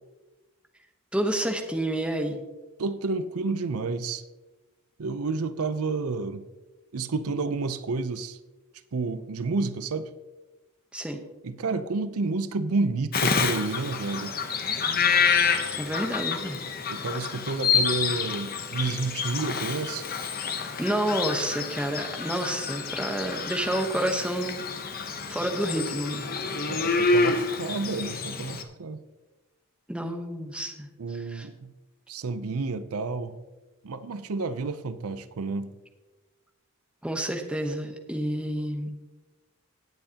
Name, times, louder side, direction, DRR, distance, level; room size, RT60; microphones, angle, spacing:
voice 1, 1.1-2.4 10.9-11.2 15.8-16.6 20.8-24.6 25.1-26.4 29.9-31.5 37.0-39.0, right 1 dB, 5° right, 3 dB, 0.9 m, -29 dB
voice 2, 2.8-4.2 5.0-6.5 6.9-8.4 8.9-10.1 11.4-14.4 16.9-20.1 26.7-29.0 31.0-31.7 32.1-33.3 33.8-35.7, right 3 dB, 80° right, 13 dB, 0.6 m, -30 dB
Bird vocalization bird call bird song, 13.1-28.6, left 5 dB, 40° left, 0.9 m, -28 dB
18.0 x 7.9 x 2.9 m, 1.2 s
head